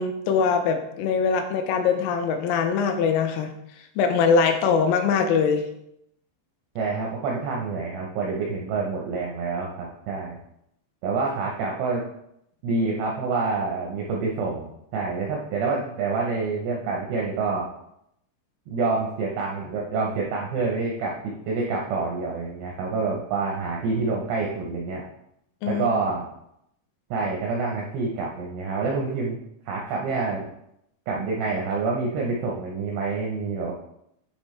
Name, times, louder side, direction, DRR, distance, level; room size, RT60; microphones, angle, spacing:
voice 1, 0.0-3.5 4.0-5.6 25.6-25.9, left 5 dB, 90° left, 6 dB, 3.4 m, -22 dB
voice 2, 6.8-10.4 11.0-12.0 12.6-17.7 18.7-25.0 25.7-26.2 27.1-29.4 29.7-30.5 31.1-33.7, right 4 dB, 85° right, -1 dB, 2.3 m, -27 dB
10.5 x 3.5 x 3.1 m, 0.78 s
omnidirectional pair, 5.7 m